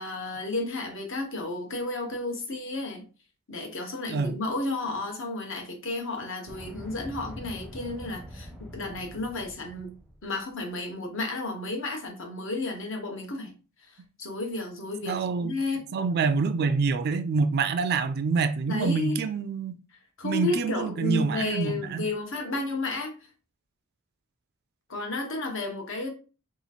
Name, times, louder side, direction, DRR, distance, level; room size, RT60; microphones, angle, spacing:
voice 1, 0.0-3.0 3.5-9.9 10.2-13.5 14.2-15.9 18.7-19.2 20.2-23.2 24.9-26.1, left 2 dB, 60° left, 1.0 m, -32 dB
sound 1, 6.5-10.4, equal, 5° left, 0.6 m, -44 dB
voice 2, 15.0-15.5 15.9-19.7 20.2-22.1, right 4 dB, 45° right, 0.3 m, -26 dB
2.9 x 2.4 x 4.1 m
head